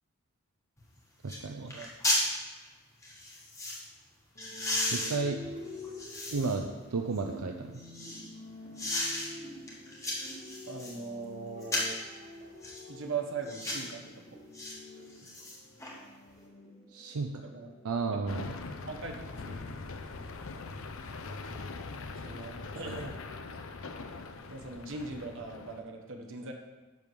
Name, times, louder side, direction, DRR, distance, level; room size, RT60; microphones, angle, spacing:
sound 1, 0.8-0.9 1.3-1.4 1.7-2.3 3.0-3.8 4.4-6.6 7.1-8.3 8.8-9.3 9.7-11.0 11.6-12.0 12.6-12.8 13.4-13.9 14.5-14.7 15.1-15.9 16.3-16.4, left 1 dB, 15° left, 1.5 m, -34 dB
voice 1, 1.2-1.7 4.9-5.4 6.3-7.8 16.9-17.4 17.8-18.6, right 4 dB, 80° right, 4 dB, 0.6 m, -33 dB
sound 2, 4.3-18.1, left 1 dB, 30° left, 1.8 m, -48 dB
voice 2, 10.7-12.0 12.9-14.3 17.4-17.7 18.1-18.4 18.8-19.8 22.2-23.2 24.5-26.5, right 4 dB, 55° right, 3 dB, 1.1 m, -40 dB
sound 3, 18.3-25.8, left 3 dB, 60° left, 0.6 m, -42 dB
10.5 x 3.6 x 6.7 m, 1.3 s
head